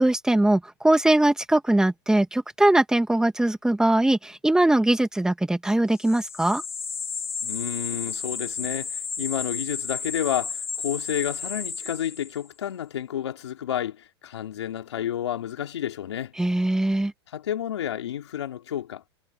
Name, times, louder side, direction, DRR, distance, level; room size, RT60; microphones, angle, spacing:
voice 1, 0.0-6.6 16.4-17.1, right 1 dB, 5° right, 1.8 m, -21 dB
sound 1, 6.0-12.5, left 5 dB, 20° left, 4.3 m, -33 dB
voice 2, 7.4-16.3 17.3-19.0, left 10 dB, 90° left, 3.2 m, -30 dB
hypercardioid pair, 120°, 14 cm